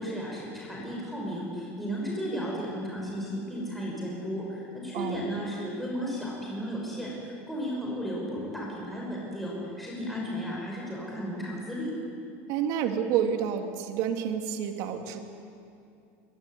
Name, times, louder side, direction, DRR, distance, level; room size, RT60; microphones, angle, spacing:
voice 1, 0.0-11.9, equal, ahead, -4 dB, 6.1 m, -34 dB
voice 2, 12.5-15.2, right 8 dB, 60° right, 5 dB, 3.0 m, -29 dB
24.0 x 22.5 x 9.7 m, 2.5 s
supercardioid pair, 145°, 7 cm